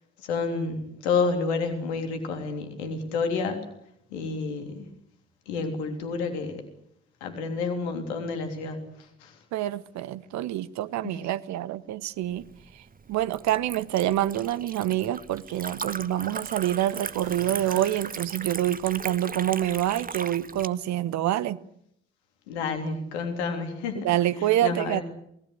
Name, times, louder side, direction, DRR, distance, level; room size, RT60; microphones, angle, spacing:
voice 1, 0.2-3.6 4.1-4.9 5.5-6.6 7.2-8.8 9.2-9.3 11.0-11.1 22.5-24.1 24.6-25.0, left 4 dB, 75° left, 3.4 m, -29 dB
voice 2, 9.5-12.5 13.1-21.6 23.9-25.0, right 13 dB, 55° right, 1.1 m, -26 dB
Liquid, 12.3-20.7, right 5 dB, 25° right, 1.2 m, -38 dB
sound 1, 14.9-15.9 16.8-18.6, right 2 dB, 75° right, 6.2 m, -49 dB
27.5 x 18.5 x 8.3 m
figure-of-eight pair, 45°, 33 cm